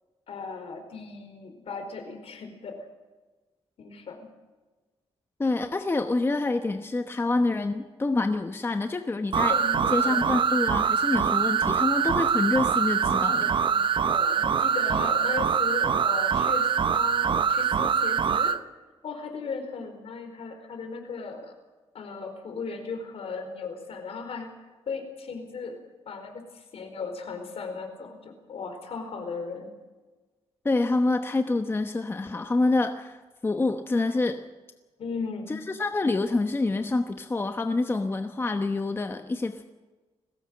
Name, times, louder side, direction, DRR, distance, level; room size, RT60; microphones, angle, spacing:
voice 1, 0.3-2.8 3.8-4.2 9.5-10.3 13.1-18.5 19.0-21.5 21.9-24.5 24.9-25.8 26.1-29.7 35.0-35.6, left 4 dB, 65° left, 5 dB, 4.6 m, -37 dB
voice 2, 5.4-9.6 9.9-13.5 30.6-33.2 33.4-34.4 35.5-39.6, left 2 dB, 20° left, 7 dB, 1.0 m, -26 dB
sound 1, 9.3-18.6, right 7 dB, 50° right, 0.8 m, -24 dB
21.0 x 17.0 x 7.7 m, 1.3 s
cardioid pair, 125°, 11 cm